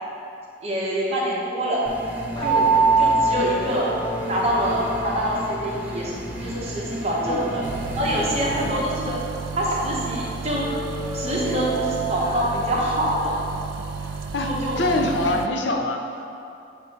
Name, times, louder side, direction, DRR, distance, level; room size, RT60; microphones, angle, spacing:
voice 1, 0.6-1.9 2.4-2.7 3.0-3.9 4.3-7.6 8.0-9.2 9.5-10.7 11.1-13.4 14.4-15.0, equal, 35° right, -5 dB, 0.9 m, -25 dB
sound 1, 1.9-8.7, equal, 10° right, 0.4 m, -34 dB
sound 2, 2.4-14.3, right 3 dB, 20° left, 0.9 m, -27 dB
sound 3, 7.6-15.5, right 5 dB, 85° right, 0.3 m, -33 dB
voice 2, 14.3-16.0, left 2 dB, 70° left, 3 dB, 0.5 m, -24 dB
7.9 x 2.6 x 4.7 m, 2.6 s
head